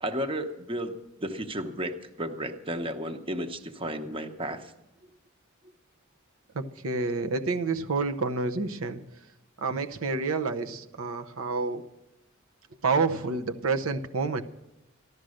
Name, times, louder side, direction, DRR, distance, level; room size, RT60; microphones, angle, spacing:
voice 1, 0.0-4.7, right 1 dB, 25° right, 7 dB, 0.9 m, -33 dB
voice 2, 6.5-9.0 9.6-11.8 12.8-14.4, right 4 dB, 85° right, 7 dB, 0.8 m, -28 dB
14.0 x 12.0 x 6.4 m, 0.93 s
head